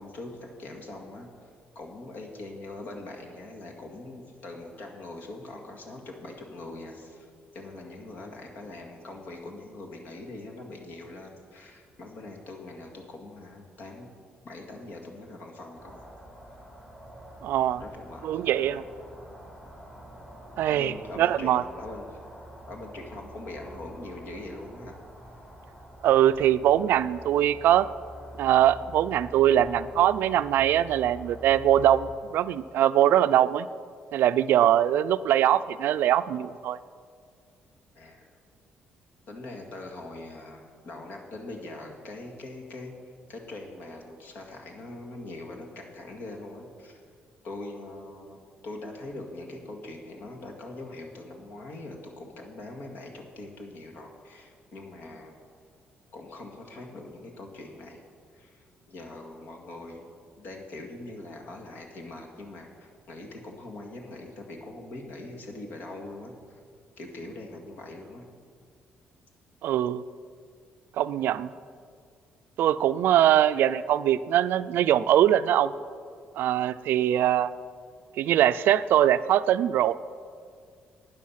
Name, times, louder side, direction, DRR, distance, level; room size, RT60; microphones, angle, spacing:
voice 1, 0.0-1.5 1.8-7.3 7.5-14.1 14.4-16.1 17.6-18.9 20.7-22.2 22.7-25.0 25.4-25.5 37.9-38.3 39.3-42.9 43.3-47.0 47.4-55.4 56.1-58.0 58.3-60.1 60.4-66.6 67.0-68.2 71.2-71.3 73.2-73.3, left 2 dB, 65° left, 2 dB, 2.0 m, -42 dB
sound 1, 15.7-32.1, equal, 20° left, 3.4 m, -46 dB
voice 2, 17.4-17.8 18.2-18.8 20.6-21.6 26.0-27.9 28.4-33.7 34.1-36.8 69.6-70.0 71.0-71.5 72.6-75.7 76.4-77.5 78.2-79.9, right 11 dB, 75° right, 14 dB, 0.4 m, -22 dB
12.5 x 9.1 x 5.8 m, 2.2 s
cardioid pair, 110°, 4 cm